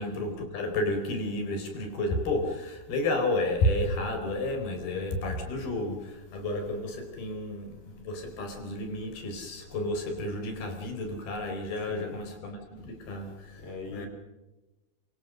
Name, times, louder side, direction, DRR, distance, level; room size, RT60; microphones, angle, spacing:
voice 1, 0.0-14.1, left 1 dB, 70° left, 5 dB, 6.4 m, -31 dB
voice 2, 11.9-12.2 13.6-14.1, left 3 dB, 35° left, 5 dB, 5.2 m, -41 dB
26.0 x 24.5 x 6.5 m, 1.0 s
omnidirectional pair, 4.5 m